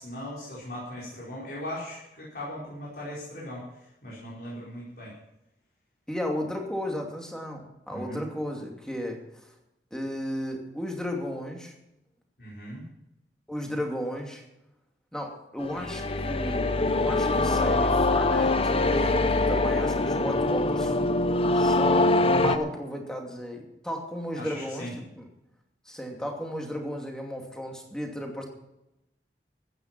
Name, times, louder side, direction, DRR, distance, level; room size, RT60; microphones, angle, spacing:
voice 1, 0.0-3.6 4.0-5.1 7.9-8.2 12.4-12.8 24.3-24.9, left 1 dB, 60° left, -7 dB, 4.9 m, -38 dB
voice 2, 6.1-9.5 9.9-11.7 13.5-14.4 15.1-21.0 21.5-25.3 25.9-28.4, equal, 5° left, 1 dB, 2.6 m, -34 dB
sound 1, 15.6-22.6, left 2 dB, 35° left, 0.8 m, -24 dB
15.0 x 9.9 x 6.0 m, 0.88 s
head